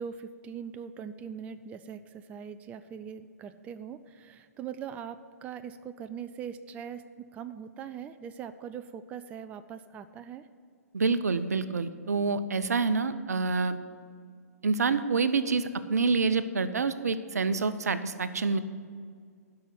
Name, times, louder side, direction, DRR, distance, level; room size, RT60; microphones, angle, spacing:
voice 1, 0.0-10.5, right 7 dB, 15° right, 11 dB, 0.3 m, -41 dB
voice 2, 10.9-13.8 14.6-18.6, right 4 dB, 75° right, 12 dB, 0.7 m, -27 dB
12.0 x 5.8 x 8.1 m, 2.1 s
figure-of-eight pair, 125°, 9 cm